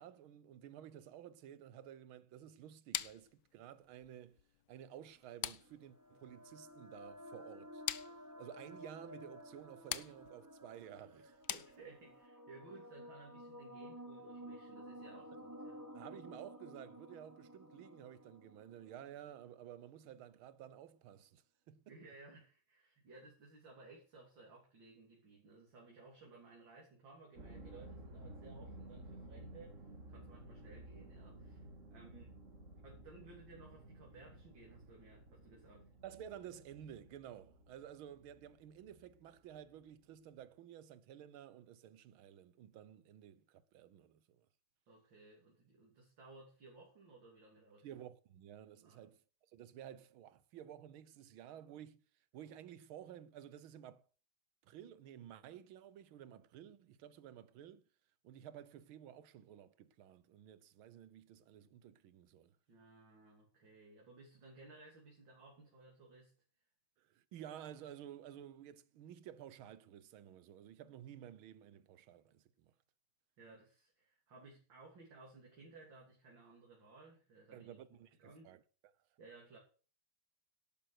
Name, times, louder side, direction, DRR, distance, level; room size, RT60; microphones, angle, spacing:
voice 1, 0.0-4.4 4.7-7.8 8.4-11.4 15.9-21.9 31.9-32.0 36.0-44.5 47.8-49.2 49.5-52.0 52.3-54.0 54.6-57.8 58.2-62.6 67.0-72.7 77.5-78.6, right 10 dB, 75° right, 1.7 m, -53 dB
sound 1, 2.9-12.3, left 12 dB, 65° left, 1.1 m, -46 dB
sound 2, 5.4-19.5, equal, 10° right, 0.9 m, -53 dB
voice 2, 11.5-15.8 21.9-31.7 31.9-32.4 32.8-35.9 44.9-47.9 48.8-49.1 62.7-66.3 73.4-77.8 78.2-78.5 79.2-79.6, right 3 dB, 60° right, 3.7 m, -58 dB
sound 3, 27.4-39.5 39.9-40.4, right 1 dB, 35° right, 2.3 m, -55 dB
11.5 x 8.7 x 6.4 m
omnidirectional pair, 2.3 m